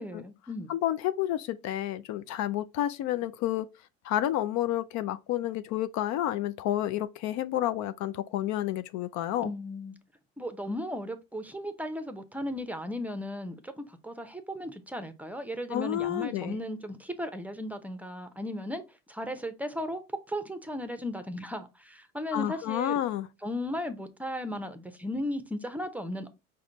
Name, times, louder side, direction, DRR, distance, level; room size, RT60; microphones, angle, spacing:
voice 1, 0.0-0.7 9.4-10.0 10.4-20.0 20.3-23.0 23.4-26.3, left 1 dB, 5° right, 0.7 m, -36 dB
voice 2, 0.7-3.7 4.0-9.5 15.7-16.6 22.3-23.3, left 12 dB, 60° left, 0.4 m, -30 dB
4.8 x 2.3 x 3.8 m
supercardioid pair, 85°, 33 cm